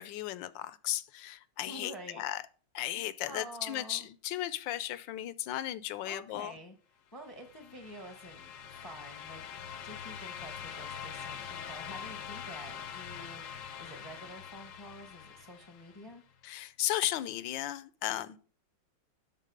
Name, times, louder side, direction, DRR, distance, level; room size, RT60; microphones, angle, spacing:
voice 1, 0.0-2.4 2.7-6.5 16.4-18.4, left 13 dB, 80° left, 1.3 m, -35 dB
voice 2, 1.7-2.2 2.9-4.1 6.0-6.8 7.1-8.5 8.8-9.4 9.8-16.2, equal, 20° left, 0.7 m, -48 dB
sound 1, 7.2-16.1, left 7 dB, 65° left, 0.8 m, -44 dB
11.5 x 4.0 x 5.2 m
omnidirectional pair, 2.0 m